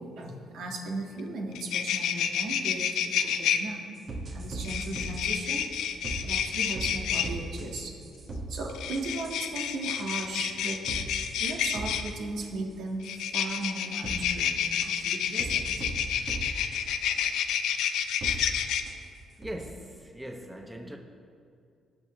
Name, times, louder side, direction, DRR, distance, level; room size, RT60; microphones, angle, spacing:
voice 1, 0.0-3.8 4.3-5.7 6.2-7.9 8.5-10.8 11.4-15.8, right 2 dB, 80° right, 0 dB, 1.7 m, -37 dB
sound 1, 1.2-1.3 1.5-3.6 4.6-7.3 8.7-12.1 13.0-18.8, left 9 dB, 85° left, 0.6 m, -29 dB
sound 2, 4.0-5.2 5.7-6.4 6.7-6.9 7.2-7.7 8.0-9.4 10.0-10.1 10.6-12.1 12.4-12.5 13.0-13.2 13.6-13.7 14.0-14.2 14.8-15.0 15.4-16.8 17.2-17.3 17.8-17.9 18.2-18.4 18.9-19.0 19.4-19.7, right 2 dB, 50° right, 1.7 m, -38 dB
voice 2, 19.4-21.0, right 1 dB, 10° right, 3 dB, 0.9 m, -40 dB
19.0 x 6.6 x 3.2 m, 2.4 s
cardioid pair, 90°, 0 cm